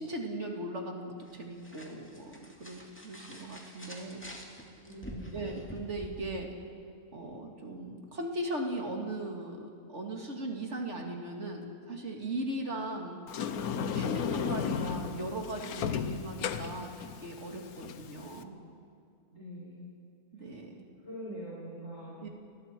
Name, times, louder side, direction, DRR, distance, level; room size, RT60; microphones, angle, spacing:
voice 1, 0.0-4.3 5.3-6.5 7.1-9.6 9.9-13.2 13.9-18.6 20.3-20.8 22.2-22.3, right 1 dB, 50° right, 2 dB, 2.4 m, -38 dB
sound 1, 1.2-6.3, equal, 10° left, 2.2 m, -48 dB
voice 2, 4.8-5.5 19.3-19.9 21.0-22.1, right 1 dB, 55° left, -10 dB, 6.1 m, -43 dB
Sliding door, 13.3-18.4, left 7 dB, 75° left, 1.3 m, -34 dB
29.5 x 21.0 x 4.5 m, 2.4 s
omnidirectional pair, 1.6 m